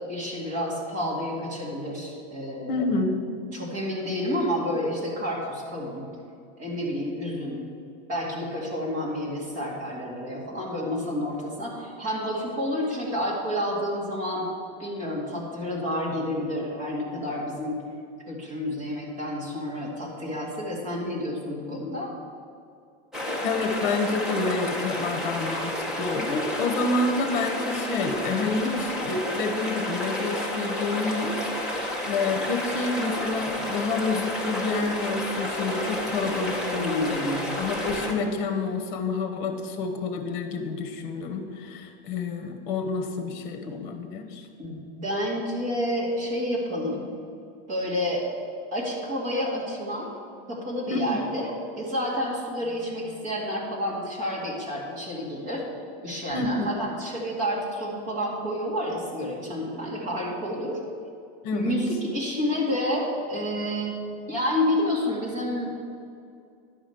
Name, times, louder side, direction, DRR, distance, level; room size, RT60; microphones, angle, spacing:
voice 1, 0.1-2.9 3.5-6.1 6.6-7.6 8.1-14.5 14.8-17.8 18.3-22.1 36.7-37.6 43.6-43.8 44.6-47.0 47.7-48.2 48.7-50.1 50.5-55.6 56.0-60.8 61.5-63.9 64.3-65.8, left 1 dB, 25° right, -4 dB, 2.1 m, -29 dB
voice 2, 2.7-3.2 23.4-37.2 37.6-44.5 50.9-51.2 56.3-56.7 61.4-61.8, left 3 dB, 50° left, 6 dB, 1.2 m, -28 dB
sound 1, 23.1-38.1, left 1 dB, ahead, 0.8 m, -31 dB
10.5 x 5.1 x 7.8 m, 2.4 s
supercardioid pair, 180°, 31 cm